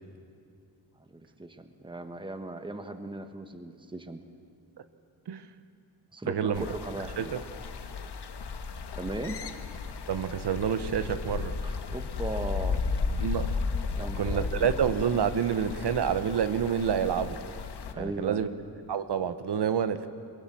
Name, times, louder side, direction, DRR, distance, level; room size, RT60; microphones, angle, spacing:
voice 1, 1.1-4.2 6.1-7.3 9.0-9.4 11.6-12.8 13.9-14.8 17.9-18.6, right 2 dB, 10° right, 8 dB, 1.2 m, -38 dB
voice 2, 6.3-6.6 7.2-7.4 10.1-11.5 13.2-13.5 14.2-17.4 18.0-18.5 18.9-20.1, right 8 dB, 85° right, 11 dB, 1.0 m, -28 dB
sound 1, 6.5-17.9, left 4 dB, 80° left, 1.4 m, -34 dB
22.5 x 22.5 x 7.6 m, 2.4 s
wide cardioid pair, 130°, 40 cm